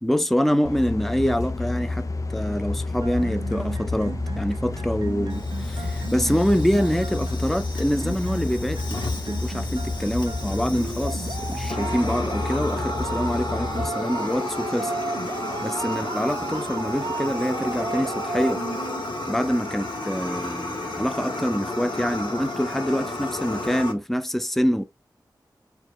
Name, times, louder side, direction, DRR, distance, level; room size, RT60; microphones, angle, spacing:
voice 1, 0.0-14.9 15.6-18.6 19.3-24.8, equal, 5° left, 0.6 m, -25 dB
sound 1, 0.6-13.9, left 3 dB, 45° left, 0.5 m, -30 dB
sound 2, 3.0-19.0, right 5 dB, 70° right, 0.5 m, -35 dB
Fire, 5.3-23.9, left 2 dB, 90° left, 1.5 m, -33 dB
5.0 x 4.7 x 2.2 m
wide cardioid pair, 65°, 8 cm